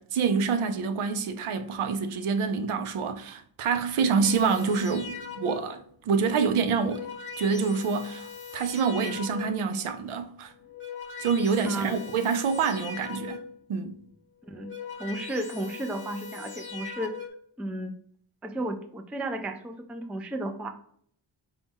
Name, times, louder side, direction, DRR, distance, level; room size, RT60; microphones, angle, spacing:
voice 1, 0.0-10.5 11.2-13.4 13.7-14.0, right 5 dB, 85° right, 0.5 m, -27 dB
sound 1, 4.2-5.8 6.6-9.8 10.5-13.7 14.4-17.3, left 6 dB, 25° left, 0.7 m, -41 dB
voice 2, 11.6-12.0 14.5-14.7 15.0-17.1 17.6-17.9 18.4-20.7, right 1 dB, 5° right, 0.3 m, -33 dB
4.1 x 2.3 x 3.4 m
cardioid pair, 50°, 49 cm